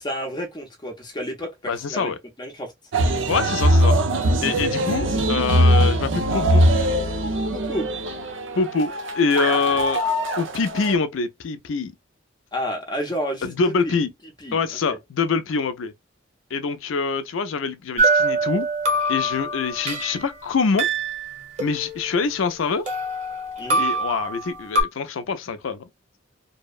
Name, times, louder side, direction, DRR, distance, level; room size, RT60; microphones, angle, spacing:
voice 1, 0.0-2.1 2.4-2.7 7.5-7.9 12.5-14.0 14.4-14.6 14.9-15.0 23.6-23.8, equal, 20° left, 0.6 m, -30 dB
voice 2, 1.7-2.2 3.3-4.0 4.4-6.6 8.6-10.0 10.4-11.9 13.4-14.1 14.5-15.9 16.5-18.7 19.1-20.9 21.6-22.9 23.8-25.9, left 5 dB, 90° left, 0.5 m, -25 dB
sound 1, 2.9-11.0, right 1 dB, 75° right, 0.6 m, -21 dB
sound 2, 18.0-20.2 20.8-22.5 22.9-24.8, right 2 dB, 40° right, 0.8 m, -24 dB
2.6 x 2.1 x 2.3 m
head